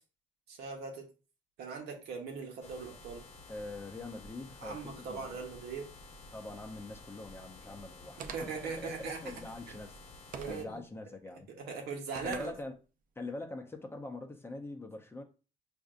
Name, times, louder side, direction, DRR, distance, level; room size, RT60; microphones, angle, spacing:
voice 1, 0.5-1.1 1.6-3.3 4.6-5.9 8.2-9.4 10.4-10.8 11.6-12.5, right 5 dB, 75° right, 1.1 m, -40 dB
sound 1, 2.6-10.6, left 3 dB, 45° left, 0.8 m, -52 dB
voice 2, 3.5-5.4 6.3-10.0 10.4-11.5 12.2-12.7 13.2-15.2, left 2 dB, 15° left, 0.6 m, -44 dB
sound 2, 8.2-8.7 10.3-10.7 12.1-12.6, right 6 dB, 55° right, 0.5 m, -44 dB
4.9 x 2.6 x 2.5 m
cardioid pair, 110°, 17 cm